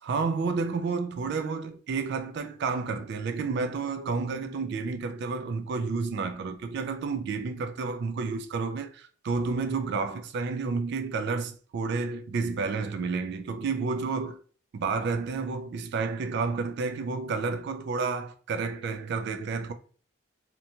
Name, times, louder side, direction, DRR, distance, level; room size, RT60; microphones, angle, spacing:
voice 1, 0.0-14.4 14.7-19.7, right 4 dB, 55° right, 0.3 m, -30 dB
2.9 x 2.2 x 2.7 m
head